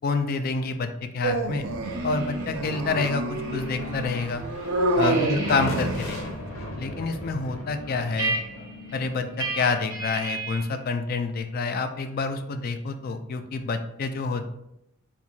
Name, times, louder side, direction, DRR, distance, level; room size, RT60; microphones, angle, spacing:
voice 1, 0.0-1.7 2.0-4.4 4.9-6.2 6.8-8.4 8.9-14.5, left 4 dB, 45° left, 8 dB, 0.3 m, -28 dB
Dog, 1.2-6.3, right 2 dB, 85° right, 0.4 m, -28 dB
sound 1, 1.8-4.3 4.6-10.8, right 2 dB, 15° right, 0.9 m, -35 dB
sound 2, 2.5-10.3, left 1 dB, 85° left, 0.7 m, -39 dB
4.5 x 2.4 x 2.7 m, 0.82 s
head